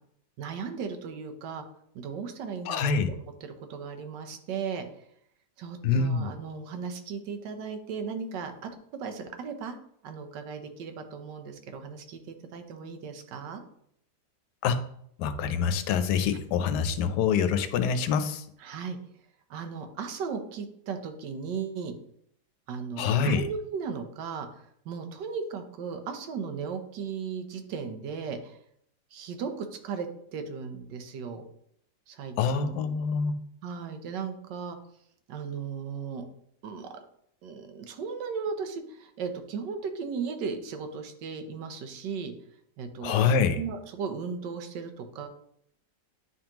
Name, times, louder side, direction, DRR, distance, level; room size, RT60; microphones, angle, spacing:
voice 1, 0.4-1.6 1.9-4.8 5.6-8.7 9.0-9.8 10.0-13.6 18.6-19.0 19.5-21.9 22.7-28.6 29.1-31.4 32.1-32.9 33.6-34.8 35.3-36.2 36.6-36.9 37.4-42.3 42.8-45.3, right 5 dB, 80° right, 6 dB, 1.4 m, -36 dB
voice 2, 2.7-3.1 5.8-6.3 14.6-14.8 15.2-18.4 23.0-23.4 32.4-33.3 43.0-43.6, left 6 dB, 75° left, 10 dB, 1.2 m, -25 dB
10.0 x 3.5 x 2.9 m, 0.70 s
omnidirectional pair, 1.9 m